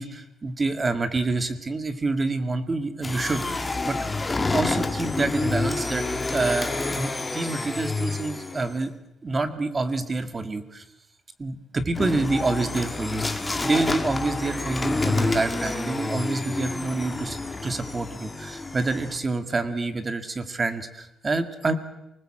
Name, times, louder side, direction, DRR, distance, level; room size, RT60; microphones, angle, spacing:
voice 1, 0.0-4.0 4.5-8.9 9.2-10.8 11.4-21.7, right 3 dB, 30° right, 9 dB, 2.0 m, -27 dB
sound 1, 3.0-8.8 11.9-19.2, left 3 dB, 20° left, 1.9 m, -28 dB
25.0 x 19.5 x 7.6 m, 0.92 s
cardioid pair, 90°, 0 cm